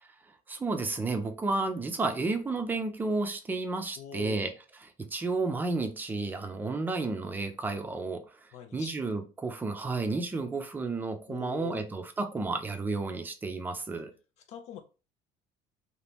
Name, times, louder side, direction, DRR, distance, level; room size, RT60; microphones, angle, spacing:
voice 1, 0.5-4.5 4.8-8.3 8.7-14.1, right 3 dB, 15° right, 0.4 m, -32 dB
voice 2, 4.0-4.5 8.5-9.0 11.3-12.0 14.5-14.8, left 9 dB, 60° left, 0.4 m, -43 dB
2.8 x 2.6 x 3.4 m
cardioid pair, 150°, 13 cm